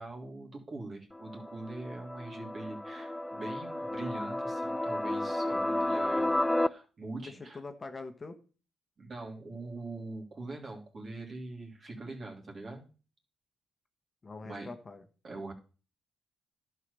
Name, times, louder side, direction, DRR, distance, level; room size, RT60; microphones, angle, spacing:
voice 1, 0.0-7.6 9.0-12.9 14.4-14.7 15.2-15.5, right 2 dB, 40° right, 1 dB, 3.2 m, -43 dB
sound 1, 1.1-6.7, left 1 dB, 5° left, 0.4 m, -32 dB
voice 2, 7.2-8.4 14.2-15.0, left 3 dB, 30° left, 7 dB, 1.3 m, -44 dB
11.5 x 4.7 x 6.9 m, 0.36 s
cardioid pair, 90°, 0 cm